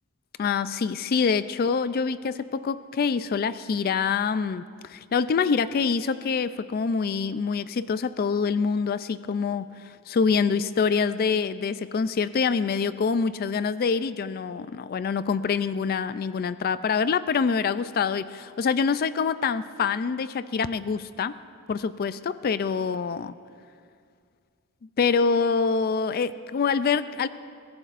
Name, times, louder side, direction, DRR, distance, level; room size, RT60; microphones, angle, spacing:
voice 1, 0.4-21.3 21.7-22.2 22.4-23.4 25.0-27.3, left 5 dB, 45° left, 14 dB, 0.3 m, -25 dB
21.5 x 17.0 x 2.5 m, 2.2 s
head